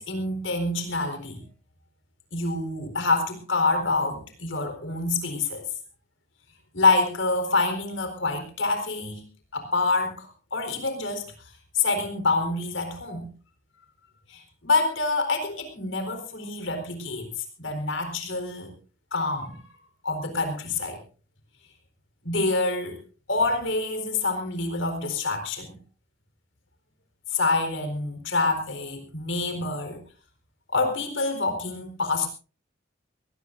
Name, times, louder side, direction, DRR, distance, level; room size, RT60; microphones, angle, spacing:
voice 1, 0.0-1.4 2.3-5.6 6.7-9.2 9.5-13.3 14.3-18.7 19.1-19.7 20.0-21.0 22.2-23.0 23.3-25.7 27.3-30.0 30.7-32.3, left 3 dB, 70° left, 7 dB, 4.3 m, -27 dB
22.5 x 18.0 x 2.6 m, 0.36 s
head